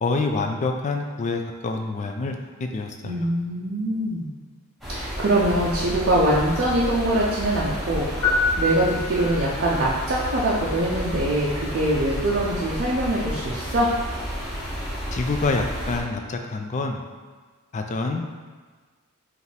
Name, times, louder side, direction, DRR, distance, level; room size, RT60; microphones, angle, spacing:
voice 1, 0.0-3.3 15.1-17.0 17.7-18.2, left 3 dB, 35° left, 4 dB, 0.3 m, -27 dB
voice 2, 3.0-4.3 4.9-13.9, right 1 dB, 50° right, -5 dB, 0.5 m, -23 dB
sound 1, 4.8-16.0, equal, ahead, 0.9 m, -31 dB
sound 2, 8.2-9.7, left 3 dB, 75° left, 1.0 m, -25 dB
5.1 x 2.5 x 3.3 m, 1.4 s
head